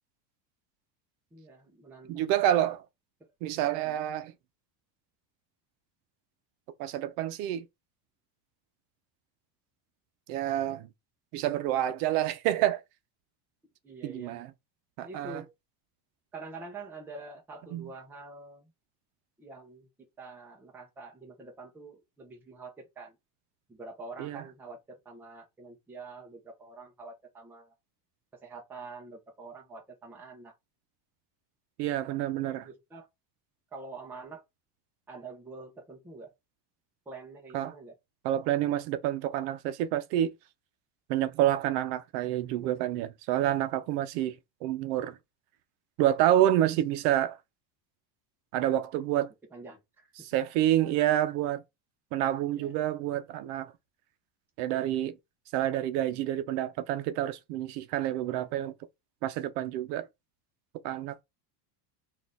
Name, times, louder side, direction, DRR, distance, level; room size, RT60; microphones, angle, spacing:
voice 1, 1.3-2.3 3.8-4.0 13.8-14.4 15.0-15.5 16.3-18.7 19.4-19.9 20.2-23.2 23.7-27.7 28.4-30.5 32.4-33.1 33.7-34.4 35.1-36.3 37.1-37.9 49.5-50.1 52.6-52.7, right 3 dB, 5° right, 0.5 m, -46 dB
voice 2, 2.1-2.8 3.4-4.3 6.8-7.6 10.3-10.9 11.3-12.8 14.0-14.5 15.0-15.4 17.7-17.9 24.2-24.4 31.8-32.7 37.5-37.7 38.2-40.3 41.1-44.3 44.6-45.2 46.0-47.4 48.5-49.3 50.2-51.6 52.1-53.7 54.6-55.2 55.5-58.7 59.2-60.1 60.8-61.2, right 12 dB, 65° right, 0.7 m, -28 dB
4.1 x 2.5 x 3.5 m
cardioid pair, 165°, 49 cm